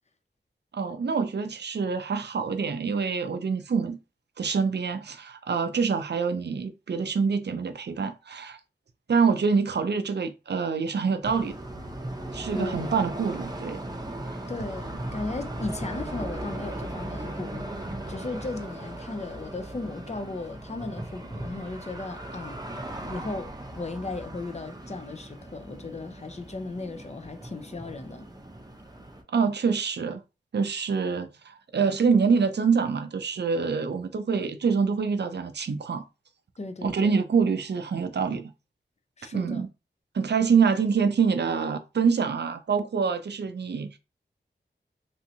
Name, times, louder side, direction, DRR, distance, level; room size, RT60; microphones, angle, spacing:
voice 1, 0.7-4.0 4.4-8.6 9.1-11.6 12.3-13.8 14.3-14.4 29.3-30.2 30.5-36.0 36.8-38.5 39.3-39.7 40.1-44.0, right 5 dB, 60° right, 0.5 m, -26 dB
sound 1, 11.2-29.2, right 1 dB, 20° right, 0.6 m, -38 dB
voice 2, 12.5-12.9 14.5-17.7 18.1-22.8 23.0-28.3 36.6-37.1 39.2-39.6, left 3 dB, 35° left, 0.5 m, -36 dB
3.1 x 2.7 x 2.7 m
wide cardioid pair, 70°, 20 cm